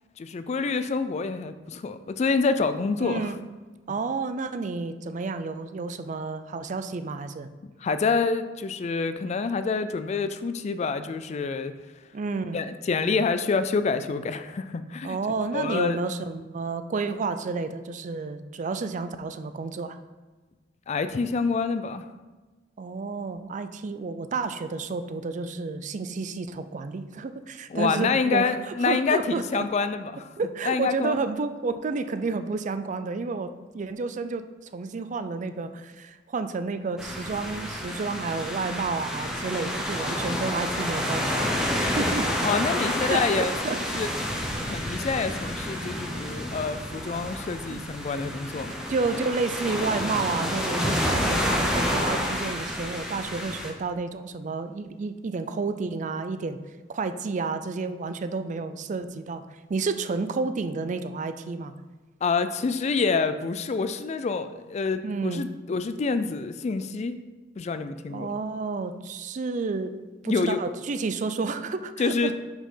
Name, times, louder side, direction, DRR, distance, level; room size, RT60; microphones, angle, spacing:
voice 1, 0.2-3.3 7.8-11.7 12.5-15.2 15.5-16.0 20.9-22.1 27.7-30.3 30.7-31.2 42.4-44.1 44.6-48.7 62.2-67.2 67.6-68.3 70.3-70.6 72.0-72.3, left 4 dB, 35° left, 11 dB, 0.3 m, -27 dB
voice 2, 3.0-3.4 3.9-7.5 12.1-12.6 15.0-20.0 22.8-29.6 30.4-34.4 34.7-42.3 43.0-44.2 47.7-47.8 48.9-56.6 56.9-59.4 59.7-61.7 65.0-65.4 68.1-69.9 70.2-72.3, right 4 dB, 40° right, 10 dB, 0.4 m, -30 dB
sound 1, 37.0-53.7, equal, 5° right, 0.8 m, -29 dB
5.8 x 4.4 x 5.5 m, 1.3 s
head